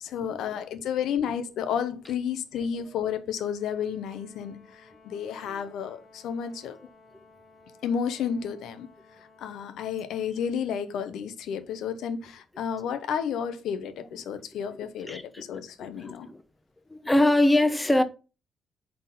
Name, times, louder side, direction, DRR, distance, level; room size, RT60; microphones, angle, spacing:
voice 1, 0.0-6.8 7.8-8.9 9.4-16.3, left 8 dB, 80° left, 0.7 m, -31 dB
Brass instrument, 3.4-9.8, left 3 dB, 60° left, 1.8 m, -56 dB
voice 2, 15.0-15.4 15.8-16.4 16.9-18.0, left 1 dB, 10° left, 0.8 m, -23 dB
4.3 x 4.0 x 5.4 m
cardioid pair, 90°, 0 cm